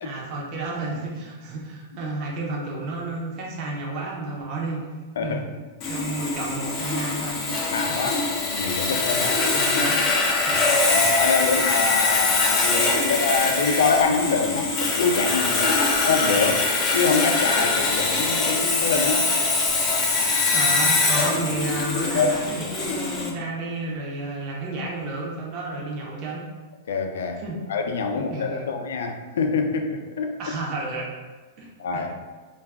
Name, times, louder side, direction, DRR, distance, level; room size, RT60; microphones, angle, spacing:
voice 1, 0.0-4.8 5.2-5.4 5.9-7.4 7.9-8.1 9.1-10.0 10.5-10.8 20.5-26.5 27.4-27.6 28.1-28.7 30.4-31.1 31.6-32.0, right 2 dB, 40° right, -3 dB, 0.6 m, -31 dB
Sawing, 5.8-23.3, left 3 dB, 30° left, 0.5 m, -23 dB
voice 2, 7.7-8.2 8.5-9.4 10.5-10.6 10.9-19.3 22.1-22.3 26.9-27.4 27.7-30.3 31.8-32.1, left 4 dB, 85° left, 4 dB, 0.3 m, -25 dB
2.3 x 2.2 x 3.4 m, 1.4 s
supercardioid pair, 145°, 0 cm